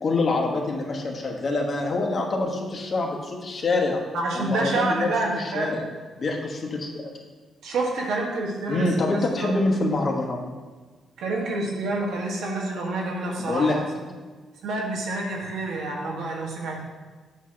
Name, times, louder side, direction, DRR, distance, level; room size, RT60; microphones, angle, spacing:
voice 1, 0.0-4.0 4.3-5.1 5.3-5.8 6.2-7.1 8.7-10.4 13.4-13.8, left 2 dB, 40° left, 0 dB, 1.2 m, -25 dB
voice 2, 4.1-5.7 7.6-9.5 11.2-14.1 14.6-16.8, right 2 dB, 85° right, -1 dB, 1.4 m, -28 dB
8.2 x 2.9 x 6.2 m, 1.4 s
cardioid pair, 115°, 0 cm